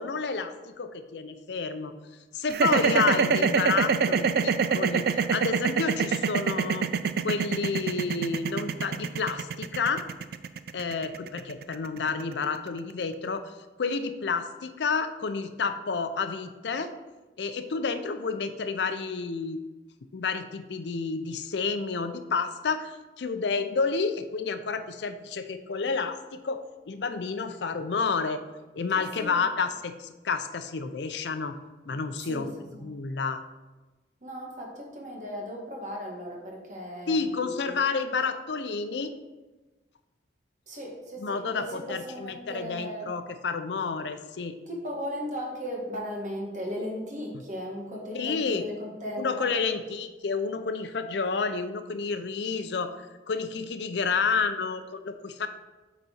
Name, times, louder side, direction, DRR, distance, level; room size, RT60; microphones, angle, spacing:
voice 1, 0.0-1.9 2.3-6.9 7.2-10.0 10.7-13.5 13.8-16.9 17.4-19.6 20.1-26.6 26.9-28.4 28.7-31.6 31.9-32.5 32.8-33.4 37.1-39.1 41.2-44.5 47.3-47.4 48.1-48.6 49.2-53.0 53.3-55.5, left 4 dB, 70° left, 9 dB, 0.5 m, -30 dB
sound 1, 2.5-12.7, right 5 dB, 55° right, 0.4 m, -25 dB
voice 2, 28.9-29.5 32.2-32.5 32.8-32.9 34.2-37.7 40.7-43.1 44.7-49.6, equal, 40° right, -1 dB, 1.5 m, -37 dB
8.2 x 4.0 x 4.3 m, 1.2 s
head